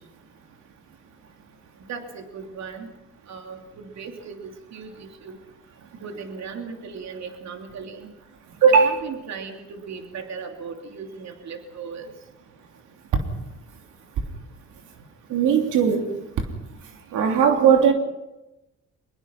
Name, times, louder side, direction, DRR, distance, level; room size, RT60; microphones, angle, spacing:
voice 1, 1.9-2.9 3.3-5.4 6.0-8.1 8.7-12.1, right 5 dB, 65° right, 4 dB, 3.1 m, -37 dB
voice 2, 8.6-9.0 15.3-16.0 17.1-17.9, right 7 dB, 80° right, 3 dB, 3.2 m, -17 dB
23.5 x 21.5 x 6.0 m, 0.95 s
cardioid pair, 90°, 30 cm